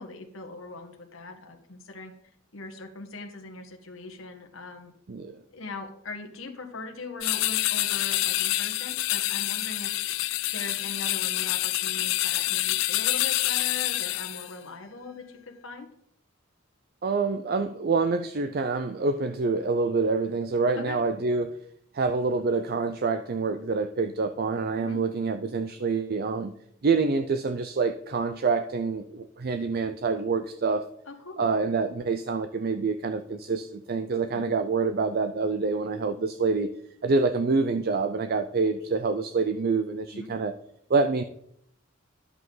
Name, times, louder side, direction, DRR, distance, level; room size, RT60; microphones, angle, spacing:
voice 1, 0.0-2.1 2.5-4.9 5.5-9.9 10.5-15.9 20.8-21.0 24.8-25.0 31.1-31.5 34.3-34.5 40.1-40.3, left 3 dB, 85° left, 4 dB, 1.5 m, -40 dB
voice 2, 5.1-5.4 17.0-21.6 21.9-26.5 26.8-30.8 31.4-36.7 37.0-40.5 40.9-41.2, right 4 dB, 50° right, 9 dB, 0.5 m, -26 dB
sound 1, 7.2-14.5, left 17 dB, 65° left, 0.4 m, -27 dB
11.0 x 8.0 x 3.9 m, 0.71 s
head